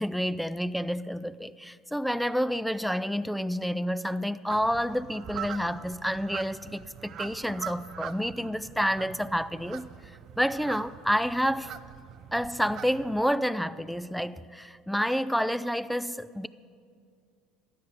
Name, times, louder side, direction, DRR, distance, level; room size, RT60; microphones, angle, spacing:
voice 1, 0.0-9.9 10.4-11.7 12.3-16.5, equal, ahead, 0.3 m, -29 dB
sound 1, 4.5-13.2, right 9 dB, 50° right, 0.5 m, -43 dB
13.0 x 9.7 x 6.0 m
supercardioid pair, 100°, 0 cm